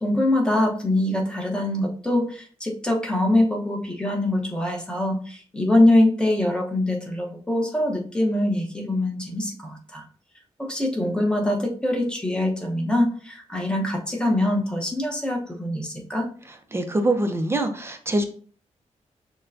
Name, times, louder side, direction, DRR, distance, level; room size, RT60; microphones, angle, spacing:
voice 1, 0.0-10.0 10.6-16.3, left 1 dB, 10° left, 0 dB, 0.8 m, -23 dB
voice 2, 16.7-18.2, right 2 dB, 20° right, 5 dB, 0.5 m, -24 dB
6.4 x 2.2 x 2.6 m, 0.43 s
wide cardioid pair, 130°, 12 cm